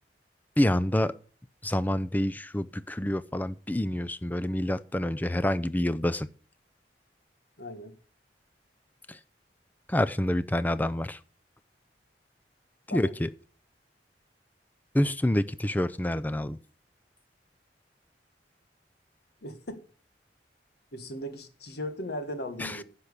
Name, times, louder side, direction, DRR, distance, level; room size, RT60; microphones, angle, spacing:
voice 1, 0.6-1.1 1.6-6.3 9.1-9.2 9.9-11.2 12.9-13.3 14.9-16.6 22.6-22.8, left 1 dB, 10° left, 0.5 m, -27 dB
voice 2, 7.6-7.9 12.9-13.1 19.4-19.8 20.9-22.8, left 1 dB, 65° left, 1.8 m, -37 dB
10.5 x 6.0 x 8.3 m
head